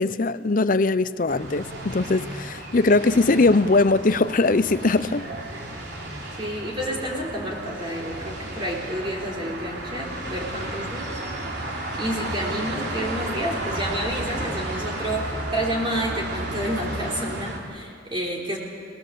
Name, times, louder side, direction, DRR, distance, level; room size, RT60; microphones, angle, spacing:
voice 1, 0.0-5.3, left 3 dB, 45° left, 0.7 m, -20 dB
sound 1, 1.3-17.6, right 1 dB, 65° right, 3.7 m, -33 dB
voice 2, 6.4-11.2 12.0-18.6, equal, 30° right, 3.6 m, -30 dB
25.0 x 20.0 x 7.6 m
head